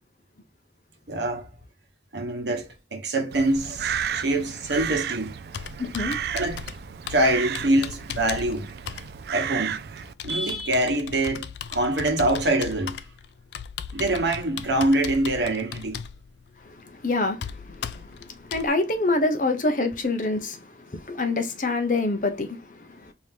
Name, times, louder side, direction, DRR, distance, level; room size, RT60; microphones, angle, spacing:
voice 1, 1.1-1.5 2.1-5.4 6.3-6.7 7.1-8.8 9.3-9.8 10.2-13.0 13.9-16.0, right 1 dB, 80° right, 1.1 m, -25 dB
Crow, 3.3-10.1, right 8 dB, 65° right, 0.3 m, -33 dB
Computer keyboard, 4.7-18.7, left 7 dB, 80° left, 0.4 m, -38 dB
voice 2, 5.8-6.2 16.8-18.2 18.5-20.6 20.9-23.1, left 2 dB, 45° left, 0.8 m, -26 dB
4.6 x 2.8 x 3.5 m
head